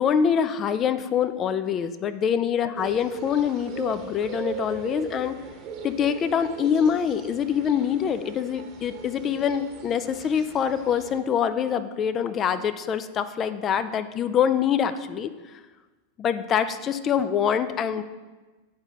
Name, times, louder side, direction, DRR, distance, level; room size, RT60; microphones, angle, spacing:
voice 1, 0.0-5.4 5.8-15.3 16.2-18.0, left 8 dB, 30° left, 12 dB, 0.4 m, -25 dB
sound 1, 2.8-11.2, right 4 dB, 35° right, 1.0 m, -39 dB
9.1 x 5.0 x 3.9 m, 1.2 s
figure-of-eight pair, 90°, 0 cm